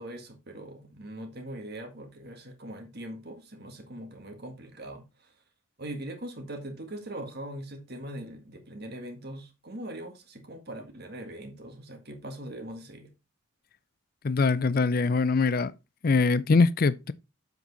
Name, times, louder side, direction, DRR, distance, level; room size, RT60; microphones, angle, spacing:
voice 1, 0.0-5.3 5.8-13.1, right 1 dB, 50° right, 1.8 m, -41 dB
voice 2, 14.2-15.7 16.0-17.1, left 4 dB, 45° left, 0.4 m, -23 dB
7.5 x 5.3 x 4.0 m
head